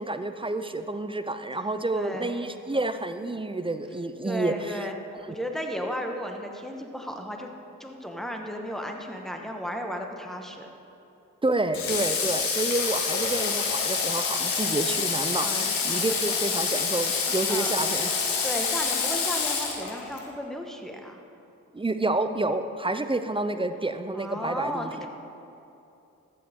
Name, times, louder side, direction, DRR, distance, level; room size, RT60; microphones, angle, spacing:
voice 1, 0.0-4.9 5.3-5.4 11.4-18.3 21.7-25.1, right 2 dB, 15° right, 9 dB, 0.6 m, -29 dB
voice 2, 1.9-2.4 4.2-4.9 5.3-7.5 7.8-10.7 15.4-15.7 17.5-17.8 18.4-21.2 24.1-25.1, equal, ahead, 2 dB, 1.5 m, -34 dB
Water / Water tap faucet, 11.7-20.3, left 5 dB, 90° left, 1.1 m, -27 dB
14.0 x 7.8 x 3.7 m, 2.8 s
supercardioid pair, 45°, 34 cm